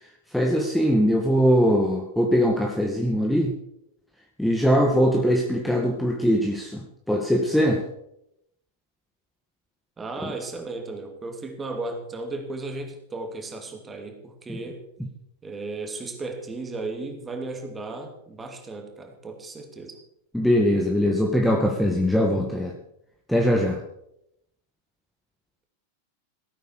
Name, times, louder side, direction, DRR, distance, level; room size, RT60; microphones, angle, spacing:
voice 1, 0.3-3.5 4.4-7.8 10.2-10.3 20.3-22.7 23.3-23.8, equal, ahead, 0 dB, 1.9 m, -21 dB
voice 2, 10.0-14.8 15.4-20.0, right 3 dB, 15° right, 4 dB, 2.8 m, -35 dB
17.0 x 9.1 x 6.5 m, 0.78 s
figure-of-eight pair, 90°, 0 cm